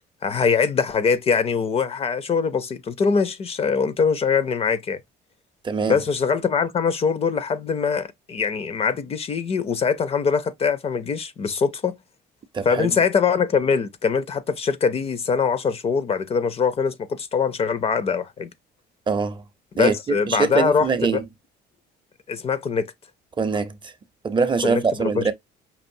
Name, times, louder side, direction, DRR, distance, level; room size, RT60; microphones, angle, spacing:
voice 1, 0.2-5.0 5.9-11.9 12.6-18.5 19.7-21.2 22.3-22.9 24.6-25.3, left 5 dB, 35° left, 0.5 m, -23 dB
voice 2, 5.6-6.0 12.5-12.9 19.1-19.4 19.8-21.2 23.4-23.9 24.2-25.3, right 5 dB, 30° right, 0.5 m, -23 dB
5.4 x 2.5 x 2.6 m
cardioid pair, 110°, 17 cm